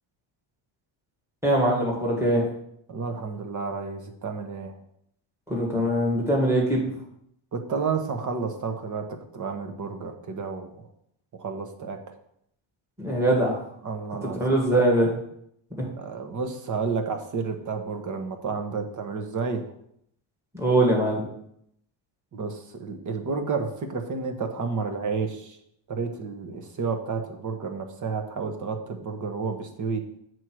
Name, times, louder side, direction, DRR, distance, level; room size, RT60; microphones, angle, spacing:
voice 1, 1.4-2.4 5.5-6.9 13.0-13.6 14.2-15.1 15.8-15.9 20.5-21.3, right 1 dB, 5° right, -3 dB, 1.9 m, -22 dB
voice 2, 2.9-4.8 7.5-10.9 11.3-12.2 13.8-14.4 16.0-19.7 22.3-25.6 25.9-30.1, right 5 dB, 35° right, 6 dB, 1.0 m, -31 dB
8.0 x 4.6 x 6.2 m, 0.72 s
cardioid pair, 170°, 50 cm